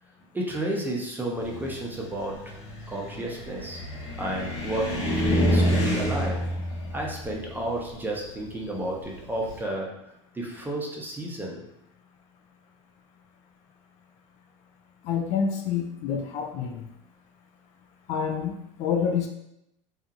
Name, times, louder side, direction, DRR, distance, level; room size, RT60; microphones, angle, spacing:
voice 1, 0.3-2.6 2.9-3.8 4.2-6.5 6.9-9.9 10.3-11.6, right 1 dB, 15° right, -1 dB, 0.7 m, -32 dB
Car, 1.4-9.6, equal, 75° left, 0.9 m, -28 dB
voice 2, 15.0-16.8 18.1-19.3, left 7 dB, 50° left, 3 dB, 0.4 m, -28 dB
2.7 x 2.5 x 2.5 m, 0.81 s
hypercardioid pair, 90°, 15 cm